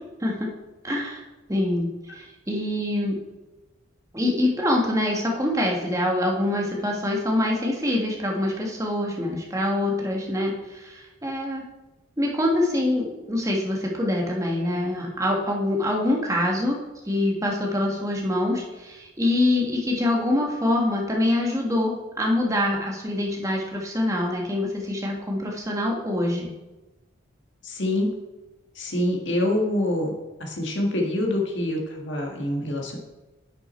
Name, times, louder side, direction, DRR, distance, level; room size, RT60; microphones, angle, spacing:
voice 1, 0.8-1.2 1.5-3.2 4.1-11.6 12.2-16.7 17.0-26.5, left 1 dB, 15° right, -1 dB, 1.5 m, -25 dB
voice 2, 27.6-28.1 28.8-30.1 30.4-33.0, left 1 dB, 65° left, 1 dB, 1.7 m, -25 dB
10.5 x 6.3 x 4.4 m, 1.1 s
head